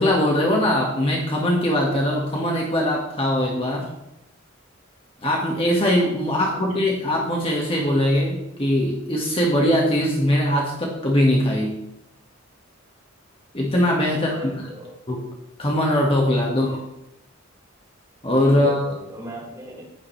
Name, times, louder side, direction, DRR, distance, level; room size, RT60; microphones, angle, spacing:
voice 1, 0.0-3.9 5.2-11.8 13.5-14.7 15.1-15.2 15.6-16.7 18.2-18.8, left 1 dB, 25° left, -1 dB, 1.9 m, -21 dB
voice 2, 6.2-6.7 14.1-15.0 16.4-16.8 18.5-19.9, equal, 15° right, -5 dB, 5.1 m, -39 dB
15.0 x 11.5 x 3.4 m, 0.86 s
head